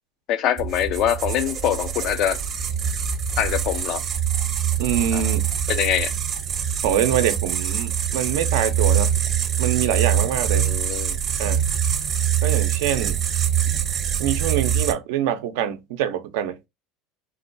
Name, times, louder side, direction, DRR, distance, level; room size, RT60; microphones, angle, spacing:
voice 1, 0.3-2.4 3.4-4.0 5.1-5.2 5.7-6.1 10.7-11.2, left 10 dB, 55° left, 0.4 m, -24 dB
sound 1, 0.6-14.9, right 9 dB, 35° right, 0.7 m, -24 dB
voice 2, 4.8-5.4 6.8-9.1 9.6-10.7 11.4-11.6 12.4-13.2 14.2-16.6, right 10 dB, 80° right, 0.5 m, -24 dB
3.7 x 2.2 x 2.5 m
supercardioid pair, 120°, 0 cm